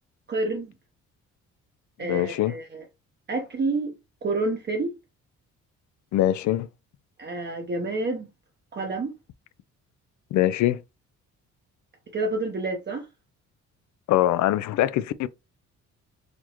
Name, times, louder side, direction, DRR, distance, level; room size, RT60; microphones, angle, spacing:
voice 1, 0.3-0.7 2.0-2.8 3.3-3.9 4.2-4.9 7.2-8.3 8.7-9.1 12.1-13.1, right 2 dB, 35° right, 0.8 m, -28 dB
voice 2, 2.0-2.6 6.1-6.7 10.3-10.8 14.1-15.3, left 13 dB, 70° left, 0.5 m, -23 dB
4.3 x 2.9 x 2.9 m
cardioid pair, 90°, 30 cm